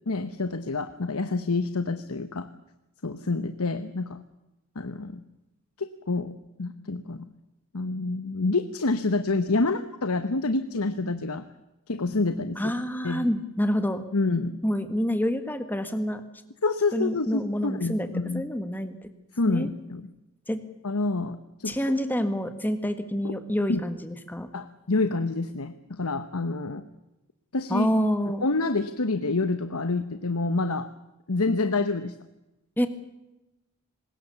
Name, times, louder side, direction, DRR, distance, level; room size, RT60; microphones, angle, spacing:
voice 1, 0.1-2.5 3.0-4.2 4.7-5.2 5.8-6.3 6.6-7.3 7.7-11.5 11.9-12.7 13.0-13.3 14.1-14.6 16.6-18.4 19.3-20.0 20.8-21.7 23.2-23.3 23.7-23.8 24.5-26.8 27.5-27.9 28.4-30.9 31.3-32.1, left 3 dB, 80° left, 10 dB, 1.1 m, -27 dB
voice 2, 12.6-14.0 14.6-16.2 16.9-19.0 19.5-19.7 20.5-20.6 21.7-24.5 27.7-28.5 32.8-32.9, equal, 10° left, 9 dB, 1.7 m, -27 dB
24.0 x 20.5 x 7.0 m, 0.99 s
head